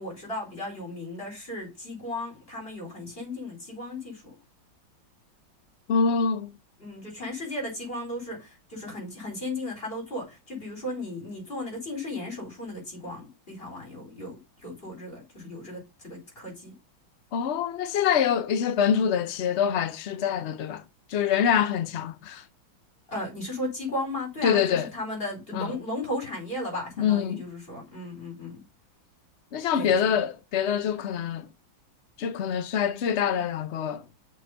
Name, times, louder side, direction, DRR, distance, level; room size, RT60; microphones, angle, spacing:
voice 1, 0.0-4.3 6.8-16.7 23.1-28.6 29.7-30.0, left 1 dB, 30° left, 4.2 m, -35 dB
voice 2, 5.9-6.5 17.3-20.8 21.1-22.4 24.4-24.9 25.5-25.8 27.0-27.5 29.5-31.5 32.2-34.0, left 7 dB, 75° left, 0.6 m, -25 dB
6.8 x 5.3 x 5.3 m
omnidirectional pair, 2.1 m